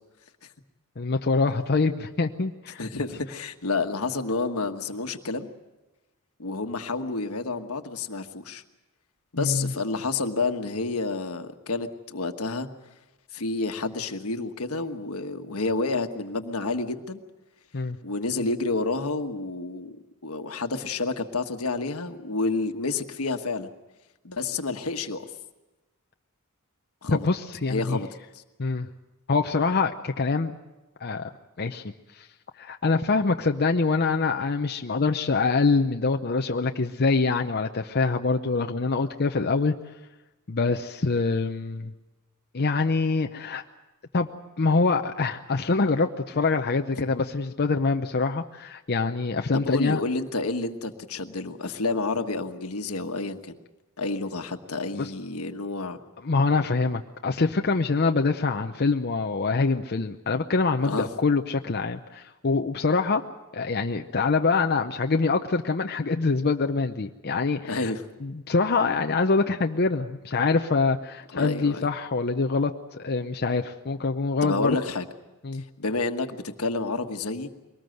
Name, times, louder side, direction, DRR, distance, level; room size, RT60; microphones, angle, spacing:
voice 1, 1.0-2.8 9.4-9.7 17.7-18.0 27.1-28.0 28.6-28.9 29.3-30.5 31.0-31.3 31.6-31.8 32.2-32.3 32.6-39.7 40.5-41.9 42.5-43.6 44.1-44.3 44.6-50.0 54.9-55.1 56.2-63.2 63.5-67.9 68.2-74.8 75.4-75.6, left 4 dB, 45° left, 5 dB, 0.7 m, -25 dB
voice 2, 2.8-5.5 6.4-8.6 9.3-12.7 13.3-17.2 18.0-20.0 20.2-23.7 24.2-25.2 27.0-27.3 27.7-28.1 28.3-28.4 49.5-53.6 54.0-56.0 60.8-61.1 67.7-68.0 71.3-71.9 74.4-75.1 75.5-77.5, left 3 dB, 75° left, 7 dB, 1.4 m, -29 dB
23.0 x 19.5 x 7.8 m, 1.1 s
head